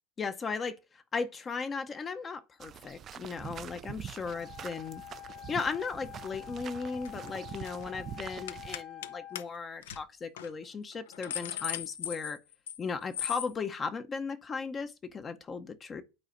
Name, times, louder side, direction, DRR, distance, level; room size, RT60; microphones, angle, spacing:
voice 1, 0.2-5.0 5.5-12.4 12.8-16.0, left 5 dB, 25° left, 0.7 m, -36 dB
sound 1, 2.6-8.8, right 9 dB, 40° right, 0.3 m, -45 dB
Wind instrument woodwind instrument, 4.2-9.5, left 11 dB, 45° left, 1.2 m, -47 dB
sound 2, 7.0-7.3 7.6-7.8 8.5-9.1 9.4-9.5 9.8-10.0 10.4-10.5 10.9-12.8 13.1-13.5, left 11 dB, 80° left, 0.6 m, -37 dB
12.0 x 4.1 x 2.6 m
hypercardioid pair, 100°, 0 cm